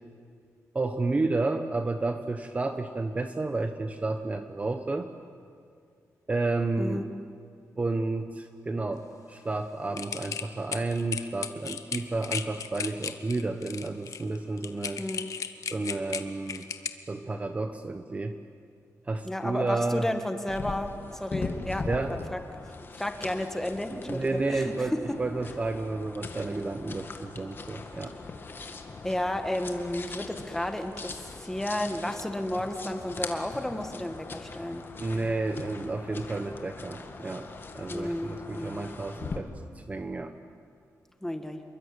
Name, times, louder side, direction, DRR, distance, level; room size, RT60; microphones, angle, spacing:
voice 1, 0.7-5.1 6.3-7.1 7.8-15.0 15.7-16.6 17.1-18.4 19.1-20.1 21.8-22.1 23.9-28.2 35.0-39.5 39.9-40.3, right 3 dB, 25° right, 7 dB, 1.0 m, -31 dB
voice 2, 6.8-7.1 15.0-15.3 19.3-22.4 22.9-25.2 29.0-34.8 37.9-38.8 41.2-41.6, left 1 dB, 5° left, 6 dB, 1.8 m, -32 dB
sound 1, 10.0-16.9, left 7 dB, 65° left, 1.3 m, -35 dB
sound 2, 20.5-39.4, left 4 dB, 40° left, 2.0 m, -41 dB
27.0 x 23.0 x 9.0 m, 2.3 s
wide cardioid pair, 145°, 6 cm